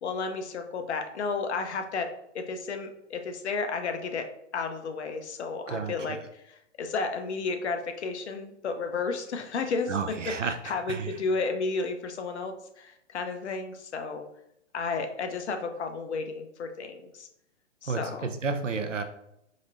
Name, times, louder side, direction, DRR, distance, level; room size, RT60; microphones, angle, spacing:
voice 1, 0.0-2.1 2.3-4.2 4.5-9.9 10.4-14.3 14.7-17.3 17.8-18.3, left 4 dB, 65° left, 6 dB, 0.6 m, -32 dB
voice 2, 5.7-6.2 9.9-11.2 17.9-19.0, right 5 dB, 90° right, 7 dB, 0.5 m, -32 dB
5.0 x 2.1 x 2.5 m, 0.78 s
figure-of-eight pair, 120°, 36 cm